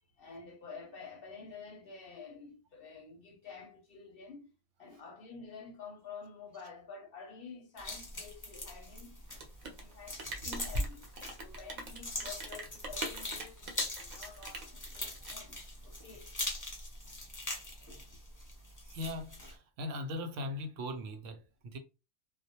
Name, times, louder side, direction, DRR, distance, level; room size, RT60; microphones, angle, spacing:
voice 1, 0.2-4.5 4.8-9.1 9.6-11.0 11.4-15.6 15.8-16.3, left 4 dB, 60° left, 0.7 m, -49 dB
sound 1, 7.8-19.5, left 2 dB, 25° left, 0.4 m, -42 dB
Rain, 9.2-16.1, right 1 dB, 50° right, 0.6 m, -41 dB
voice 2, 18.8-21.8, left 1 dB, 80° right, 0.9 m, -40 dB
2.3 x 2.1 x 2.8 m
omnidirectional pair, 1.3 m